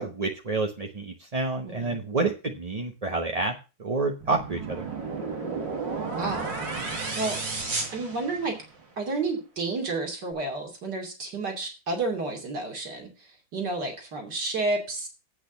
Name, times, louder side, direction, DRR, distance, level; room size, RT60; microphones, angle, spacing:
voice 1, 0.0-3.5 3.8-4.8, right 3 dB, 30° right, 2 dB, 0.7 m, -28 dB
voice 2, 1.6-2.0 6.1-6.5 7.1-7.4 7.9-8.6 9.0-13.1 13.5-15.1, right 3 dB, 65° right, 3 dB, 3.2 m, -30 dB
sound 1, 4.2-8.8, right 4 dB, 85° right, 3.3 m, -32 dB
8.4 x 6.2 x 7.0 m, 0.31 s
omnidirectional pair, 1.9 m